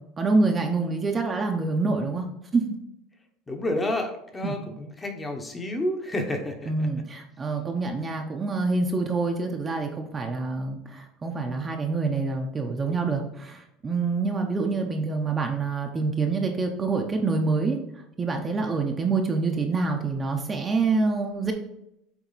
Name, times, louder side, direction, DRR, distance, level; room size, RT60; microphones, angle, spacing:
voice 1, 0.2-2.2 2.5-2.6 4.4-4.5 6.7-17.8 18.2-21.5, right 3 dB, 20° right, 2 dB, 0.7 m, -26 dB
voice 2, 3.5-6.7, left 1 dB, 15° left, 4 dB, 1.0 m, -30 dB
7.2 x 4.3 x 4.0 m, 0.81 s
cardioid pair, 150°, 0 cm